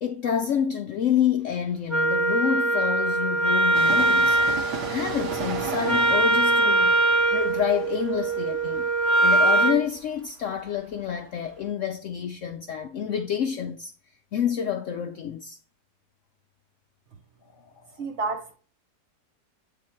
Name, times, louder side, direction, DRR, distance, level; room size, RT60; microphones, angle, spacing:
voice 1, 0.0-4.4 4.9-7.0 7.3-8.9 9.2-13.9 14.3-15.6 18.0-18.1, left 9 dB, 70° left, 0.7 m, -28 dB
Wind instrument woodwind instrument, 1.9-9.8, right 2 dB, ahead, 0.6 m, -22 dB
Train, 3.7-11.2 11.4-11.5, right 3 dB, 80° right, 1.8 m, -36 dB
voice 2, 18.0-18.6, right 3 dB, 50° right, 1.1 m, -30 dB
8.4 x 3.6 x 4.4 m
omnidirectional pair, 1.8 m